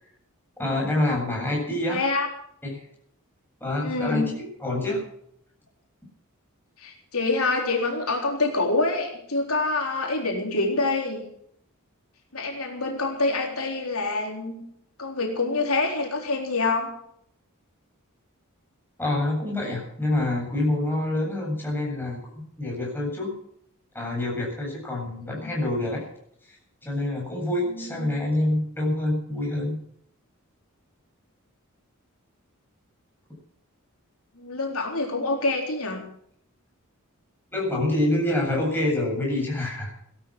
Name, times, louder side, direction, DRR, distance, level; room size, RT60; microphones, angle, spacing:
voice 1, 0.6-2.0 2.6-2.8 3.6-5.0 19.0-22.2 22.6-23.3 23.9-26.0 26.5-26.6 26.8-29.8 37.5-39.9, left 1 dB, 10° left, -2 dB, 8.0 m, -26 dB
voice 2, 1.9-2.3 3.8-4.4 6.8-11.2 12.3-14.6 15.0-16.9 25.4-25.5 27.7-28.1 34.4-36.0, left 3 dB, 80° left, 1 dB, 3.9 m, -26 dB
17.5 x 12.5 x 6.2 m, 0.69 s
head